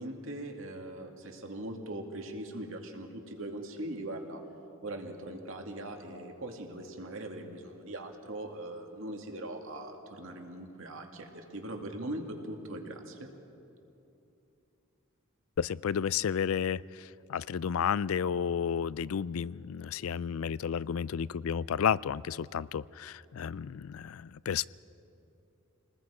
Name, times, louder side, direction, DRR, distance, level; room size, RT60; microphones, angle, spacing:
voice 1, 0.0-4.4 4.8-13.3, right 1 dB, 70° right, 3 dB, 2.2 m, -41 dB
voice 2, 15.6-24.7, left 7 dB, 85° left, 20 dB, 0.4 m, -32 dB
29.5 x 20.0 x 5.0 m, 2.9 s
head